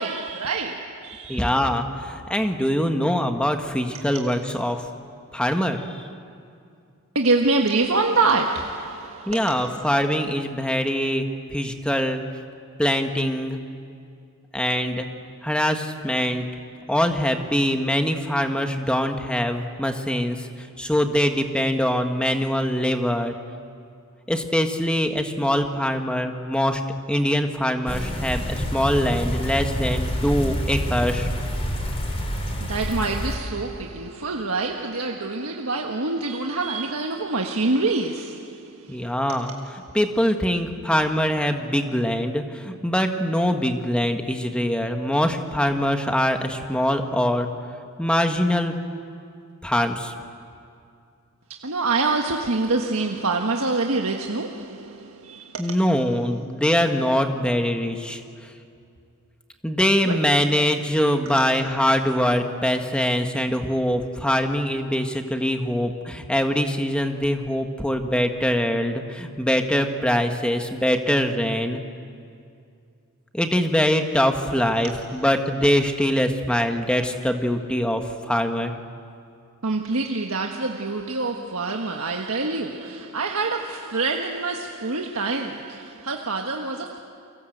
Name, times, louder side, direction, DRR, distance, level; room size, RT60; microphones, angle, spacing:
voice 1, 0.0-1.4 4.0-4.1 7.1-9.7 32.6-39.0 51.5-55.8 60.0-60.2 74.8-74.9 79.6-87.0, right 3 dB, 90° right, 1.5 m, -26 dB
voice 2, 1.3-4.8 5.3-6.0 9.3-12.2 12.8-13.6 14.5-15.1 15.4-16.4 16.9-23.3 24.3-26.8 27.1-31.3 38.9-39.5 39.9-47.5 48.0-48.7 49.6-50.1 55.6-58.2 59.6-71.8 73.3-78.7, equal, 5° left, 1.5 m, -23 dB
sound 1, 27.9-33.4, equal, 30° left, 3.5 m, -27 dB
30.0 x 24.0 x 8.0 m
head